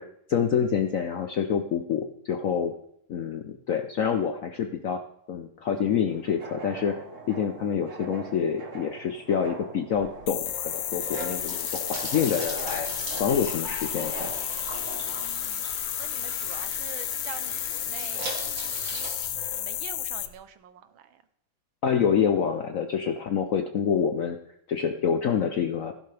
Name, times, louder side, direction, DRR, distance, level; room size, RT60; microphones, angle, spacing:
voice 1, 0.0-2.7 3.1-5.0 5.3-12.9 13.2-14.3 21.8-24.4 24.7-25.9, left 7 dB, 65° left, 6 dB, 0.8 m, -27 dB
sound 1, 5.6-15.3, right 4 dB, 45° right, 1.5 m, -43 dB
sound 2, 9.9-20.3, right 3 dB, 65° right, 2.8 m, -40 dB
sound 3, 10.3-20.3, left 13 dB, 90° left, 1.5 m, -32 dB
voice 2, 15.1-19.1 19.5-21.2, right 8 dB, 80° right, 11 dB, 1.7 m, -46 dB
15.5 x 11.0 x 3.4 m, 0.73 s
omnidirectional pair, 2.2 m